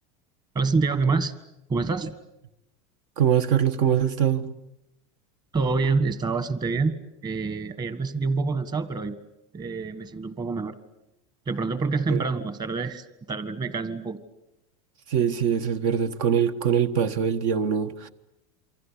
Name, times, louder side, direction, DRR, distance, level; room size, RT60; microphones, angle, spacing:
voice 1, 0.5-1.3 1.7-2.1 5.5-6.9 7.2-9.1 9.5-10.8 11.5-14.2, right 4 dB, 25° right, 1.6 m, -26 dB
voice 2, 3.2-4.6 12.1-12.2 15.1-18.1, right 8 dB, 70° right, 1.5 m, -23 dB
28.0 x 24.5 x 8.5 m
supercardioid pair, 135°, 18 cm